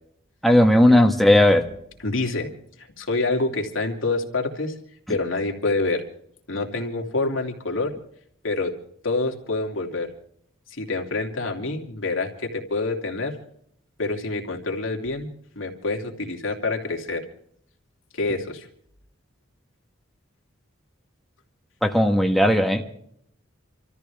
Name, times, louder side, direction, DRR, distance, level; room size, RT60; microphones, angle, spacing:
voice 1, 0.4-1.7 21.8-22.8, left 1 dB, ahead, 1.3 m, -16 dB
voice 2, 2.0-2.5 2.8-4.7 5.1-6.0 6.5-7.9 8.4-8.7 9.0-10.1 10.7-13.4 14.0-17.3 18.1-18.7, left 3 dB, 80° left, 2.8 m, -27 dB
28.0 x 14.0 x 3.5 m
head